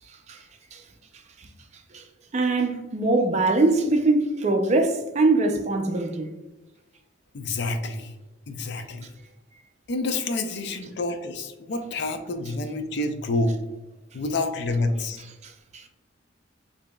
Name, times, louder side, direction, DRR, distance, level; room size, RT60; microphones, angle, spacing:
voice 1, 2.3-6.3 15.4-15.8, right 2 dB, 35° right, 0.4 m, -22 dB
voice 2, 7.3-8.1 8.5-9.1 9.9-13.5 14.1-15.2, left 2 dB, 60° left, 0.4 m, -28 dB
4.9 x 2.7 x 2.2 m
head